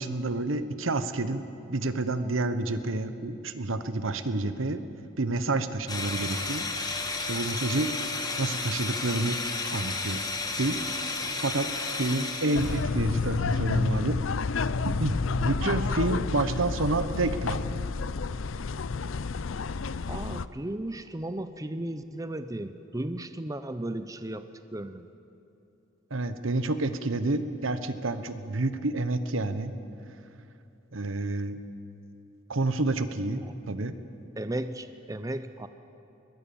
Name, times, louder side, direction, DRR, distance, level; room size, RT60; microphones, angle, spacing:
voice 1, 0.0-1.4 1.7-4.8 5.2-6.6 7.3-7.9 8.4-9.4 9.7-10.2 10.6-10.8 11.4-11.7 12.0-14.2 14.8-17.6 26.1-29.7 30.9-31.6 32.5-33.9, right 2 dB, 80° right, 11 dB, 1.1 m, -29 dB
sound 1, 5.9-12.8, left 3 dB, 20° left, 1.5 m, -32 dB
sound 2, 12.5-20.5, left 4 dB, 75° left, 0.6 m, -30 dB
voice 2, 20.1-24.5 24.7-25.0 34.4-35.7, right 1 dB, 15° right, 10 dB, 0.6 m, -35 dB
22.0 x 20.0 x 7.1 m, 2.8 s
head